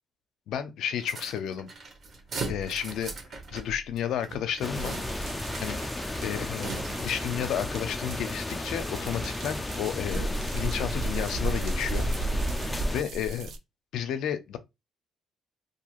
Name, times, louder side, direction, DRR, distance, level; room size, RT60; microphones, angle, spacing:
voice 1, 0.5-1.7 2.5-3.1 3.5-4.9 5.6-5.8 6.2-6.7 7.0-12.1 12.9-13.5 13.9-14.6, left 9 dB, 80° left, 0.4 m, -32 dB
sound 1, 1.0-7.3, right 3 dB, 50° right, 0.9 m, -39 dB
sound 2, 4.6-13.0, left 2 dB, 20° left, 0.3 m, -34 dB
sound 3, 4.7-13.6, right 2 dB, 70° right, 0.4 m, -34 dB
2.8 x 2.6 x 2.3 m
cardioid pair, 90°, 0 cm